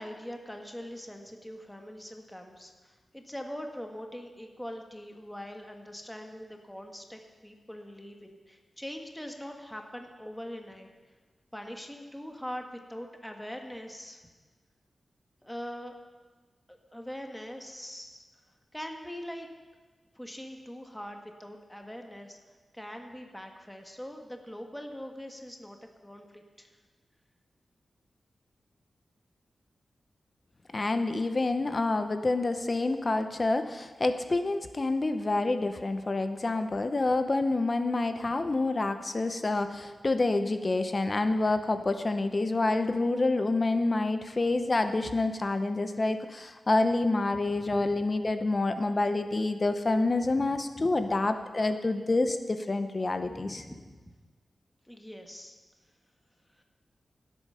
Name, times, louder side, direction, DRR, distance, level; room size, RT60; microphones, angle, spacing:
voice 1, 0.0-10.9 11.5-14.2 15.4-15.9 16.7-18.2 18.7-19.5 20.1-22.4 22.7-25.8 26.0-26.7 47.6-47.9 50.8-50.9 53.3-54.1 54.9-55.6 56.6-56.7, equal, 5° left, 3 dB, 1.4 m, -42 dB
voice 2, 30.7-53.6, left 2 dB, 40° left, 8 dB, 0.7 m, -28 dB
16.0 x 8.4 x 5.5 m, 1.4 s
wide cardioid pair, 80°, 0 cm